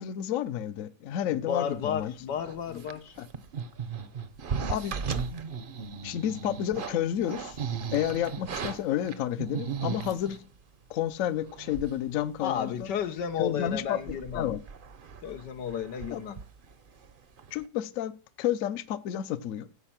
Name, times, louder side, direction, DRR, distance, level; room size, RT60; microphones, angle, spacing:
voice 1, 0.0-2.1 3.2-3.3 4.7-4.9 6.0-7.6 7.9-10.4 10.9-12.9 13.4-14.6 16.1-16.2 17.5-18.1 18.4-19.7, left 11 dB, 60° left, 1.0 m, -30 dB
voice 2, 1.3-3.2 12.4-14.5 15.2-16.4, left 8 dB, 90° left, 1.6 m, -33 dB
sound 1, 2.4-10.4 11.1-11.2 11.5-12.1 12.4-12.5 12.9-13.2 13.6-17.1 17.4-17.6, right 6 dB, 45° right, 0.7 m, -36 dB
15.5 x 5.4 x 5.9 m
omnidirectional pair, 1.8 m